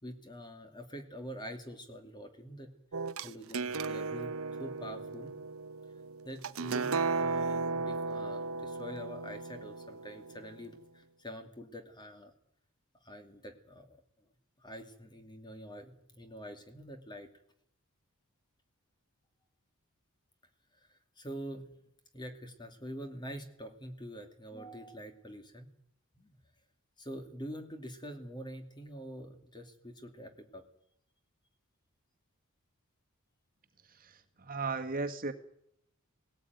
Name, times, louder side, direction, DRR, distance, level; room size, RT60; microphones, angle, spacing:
voice 1, 0.0-2.7 3.2-4.3 4.6-5.4 6.2-12.3 13.0-14.0 14.6-17.3 20.9-21.7 22.1-25.7 26.2-26.4 27.0-30.6, equal, 20° left, 6 dB, 2.5 m, -45 dB
sound 1, 2.9-10.6, right 4 dB, 65° right, 0.8 m, -35 dB
voice 2, 33.8-35.3, right 3 dB, 40° right, 5 dB, 1.8 m, -36 dB
19.0 x 17.0 x 9.4 m, 0.72 s
head